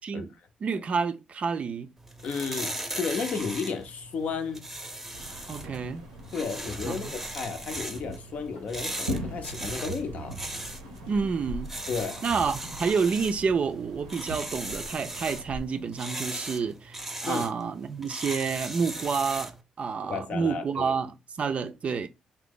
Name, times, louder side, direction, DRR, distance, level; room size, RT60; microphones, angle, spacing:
voice 1, 0.0-0.3 0.6-1.9 5.5-6.0 6.8-7.1 11.1-11.7 12.2-22.1, right 5 dB, 45° right, 0.4 m, -29 dB
sound 1, 2.0-19.6, right 1 dB, 10° right, 0.6 m, -38 dB
voice 2, 2.2-4.7 6.3-10.4 11.9-12.2 17.3-17.5 20.0-21.0, left 5 dB, 55° left, 0.6 m, -33 dB
sound 2, 5.1-15.6, equal, 90° right, 0.6 m, -41 dB
sound 3, 6.1-7.8 8.3-9.4 10.4-10.6 11.1-11.2 11.7-11.8 12.3-13.4, right 1 dB, 85° left, 1.1 m, -50 dB
2.7 x 2.0 x 3.7 m
hypercardioid pair, 45°, 3 cm